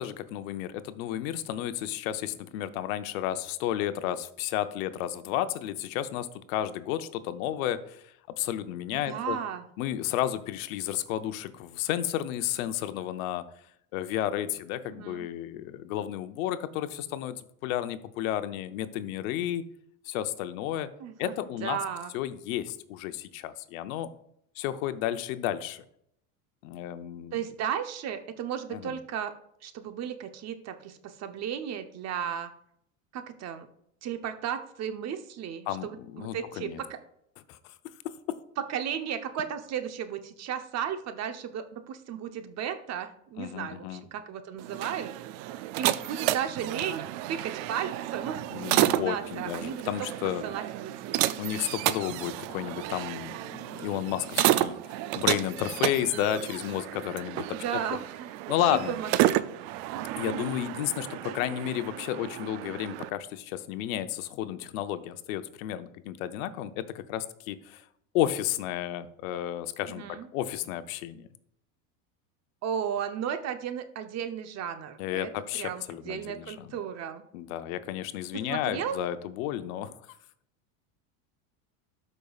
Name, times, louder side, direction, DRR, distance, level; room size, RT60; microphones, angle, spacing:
voice 1, 0.0-9.4 9.8-13.4 13.9-19.6 20.0-20.9 21.2-21.8 22.1-24.1 24.6-25.8 26.6-27.4 28.7-29.0 35.7-36.8 37.5-37.7 38.3-38.4 43.4-44.0 48.5-50.4 51.4-57.6 58.5-59.0 60.1-67.8 68.1-71.3 75.0-76.7 77.3-79.9, left 12 dB, 75° left, 11 dB, 0.8 m, -32 dB
voice 2, 8.9-9.6 14.9-15.3 21.0-21.3 21.6-22.1 27.3-29.3 29.6-32.5 33.1-33.7 34.0-37.0 38.6-45.1 45.8-47.0 47.3-48.5 48.9-49.8 50.4-51.2 57.5-58.3 58.7-59.4 61.2-61.3 69.9-70.3 72.6-77.2 78.3-79.0, right 8 dB, 40° right, 8 dB, 0.8 m, -34 dB
sound 1, 44.6-63.1, right 15 dB, 60° right, 0.5 m, -31 dB
12.5 x 5.4 x 2.4 m, 0.72 s
supercardioid pair, 115°, 42 cm